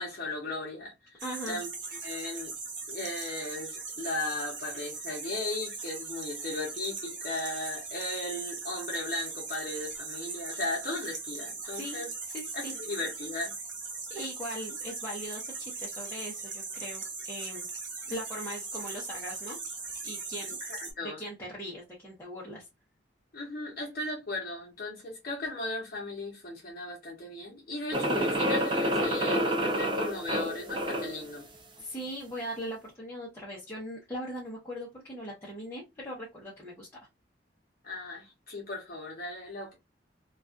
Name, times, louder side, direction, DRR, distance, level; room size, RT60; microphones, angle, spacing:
voice 1, 0.0-2.5 2.9-12.1 12.5-13.5 20.7-21.2 23.3-31.5 37.8-39.7, left 2 dB, 50° left, 0.8 m, -36 dB
voice 2, 1.2-1.6 11.7-12.1 12.3-12.7 14.1-17.7 18.1-19.6 20.0-20.6 21.0-22.6 31.8-36.9, equal, 15° left, 0.7 m, -40 dB
sound 1, 1.2-20.9, right 4 dB, 70° right, 0.9 m, -39 dB
sound 2, 27.9-31.2, equal, 25° right, 0.5 m, -28 dB
2.5 x 2.3 x 2.3 m
head